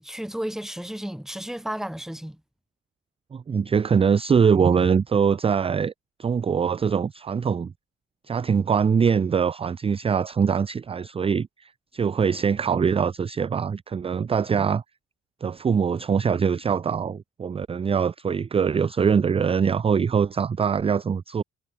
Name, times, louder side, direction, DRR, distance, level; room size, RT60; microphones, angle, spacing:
voice 1, 0.0-2.4, equal, ahead, 0.8 m, -33 dB
voice 2, 3.3-5.9 6.2-7.7 8.3-14.8 15.4-21.4, right 6 dB, 20° right, 0.3 m, -23 dB
cardioid pair, 90°, 30 cm